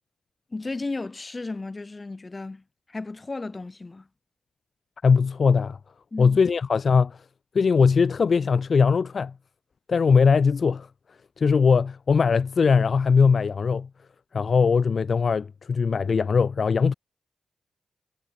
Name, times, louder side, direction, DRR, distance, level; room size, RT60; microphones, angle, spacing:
voice 1, 0.5-4.1 6.1-6.4, left 3 dB, 35° left, 3.4 m, -34 dB
voice 2, 5.0-5.8 6.2-7.2 7.5-9.3 9.9-10.9 11.4-13.9 14.3-16.9, left 5 dB, 60° left, 0.4 m, -20 dB
cardioid pair, 50°, 0 cm